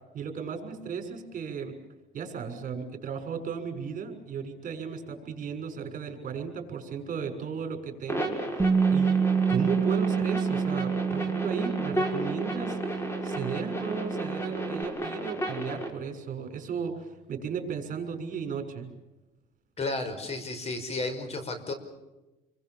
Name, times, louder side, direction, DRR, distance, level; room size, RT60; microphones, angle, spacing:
voice 1, 0.1-1.7 2.1-8.6 8.9-9.2 9.5-12.8 13.2-18.9, right 6 dB, 50° right, 5 dB, 6.4 m, -35 dB
sound 1, 8.1-15.9, right 1 dB, 15° left, 6.1 m, -33 dB
Bass guitar, 8.6-14.8, right 6 dB, 10° right, 2.0 m, -28 dB
voice 2, 19.8-21.7, left 2 dB, 40° left, 9 dB, 5.4 m, -33 dB
29.0 x 23.0 x 7.4 m, 1.1 s
cardioid pair, 110°, 17 cm